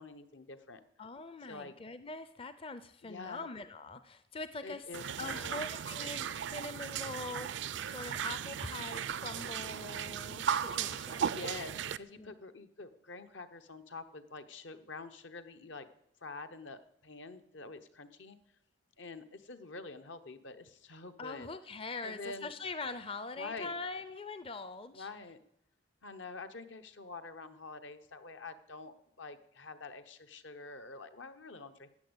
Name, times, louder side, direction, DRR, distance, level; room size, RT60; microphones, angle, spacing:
voice 1, 0.0-0.8 1.5-1.8 3.0-3.5 4.6-5.7 11.3-15.9 16.2-18.4 19.0-21.5 22.0-22.5 23.4-23.7 24.9-25.4 26.0-31.9, left 3 dB, 70° left, 9 dB, 0.9 m, -46 dB
voice 2, 1.0-4.8 5.2-11.4 12.2-12.3 21.2-25.1, left 3 dB, 30° left, 12 dB, 0.5 m, -43 dB
sound 1, 4.9-12.0, right 8 dB, 65° right, 0.4 m, -36 dB
13.5 x 8.7 x 8.0 m, 0.77 s
head